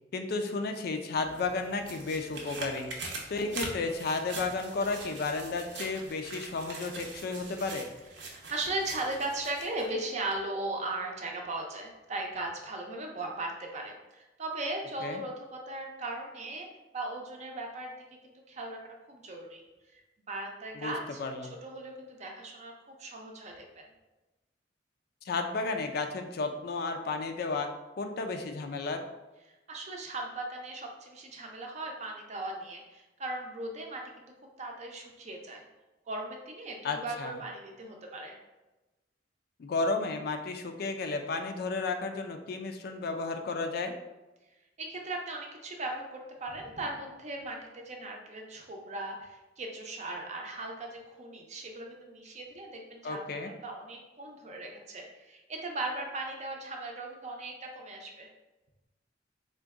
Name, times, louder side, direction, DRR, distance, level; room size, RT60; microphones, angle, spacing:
voice 1, 0.1-2.9 3.3-7.9 15.0-15.2 20.8-20.9 21.2-21.5 25.3-27.7 28.0-29.0 36.8-37.3 39.6-43.9 53.0-53.5, left 3 dB, 60° left, 6 dB, 0.4 m, -33 dB
sound 1, 1.1-9.9 10.3-10.4, right 3 dB, 80° right, 0.7 m, -43 dB
voice 2, 8.2-16.7 16.9-19.6 19.9-21.2 21.5-23.8 29.7-35.6 36.1-38.4 44.8-58.3, right 2 dB, 40° right, 1 dB, 0.5 m, -38 dB
3.8 x 2.2 x 3.5 m, 1.1 s
head